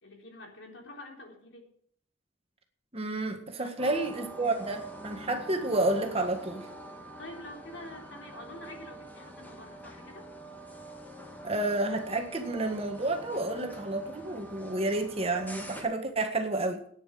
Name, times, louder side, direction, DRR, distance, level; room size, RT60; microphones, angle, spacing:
voice 1, 0.0-1.7 3.6-4.0 7.2-10.2, left 1 dB, 70° left, 3.8 m, -47 dB
voice 2, 2.9-6.7 11.4-16.8, right 2 dB, 30° right, 1.7 m, -30 dB
sound 1, 3.8-15.8, right 2 dB, 10° left, 1.9 m, -45 dB
9.7 x 9.1 x 8.6 m
head